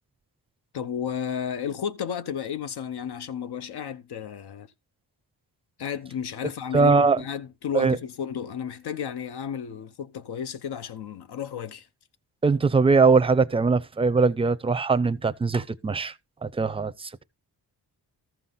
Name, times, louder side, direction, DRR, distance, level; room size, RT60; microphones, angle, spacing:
voice 1, 0.7-4.7 5.8-11.9, left 8 dB, 85° left, 0.8 m, -33 dB
voice 2, 6.7-7.2 7.7-8.0 12.4-16.1 16.4-17.2, right 4 dB, 15° right, 0.5 m, -21 dB
14.0 x 5.7 x 3.9 m
wide cardioid pair, 150°, 38 cm